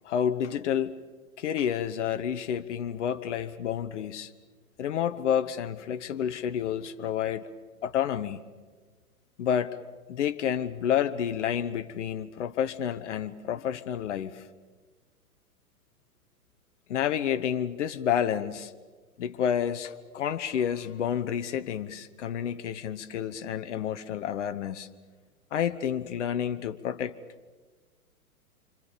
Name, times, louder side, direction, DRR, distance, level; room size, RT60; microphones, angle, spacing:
voice 1, 0.0-0.9 1.4-4.3 4.8-7.5 7.8-8.4 9.4-9.8 10.1-14.5 16.9-18.7 19.2-24.9 25.5-27.1, left 9 dB, 50° left, 1.1 m, -29 dB
26.5 x 26.0 x 6.9 m
figure-of-eight pair, 110°, 45 cm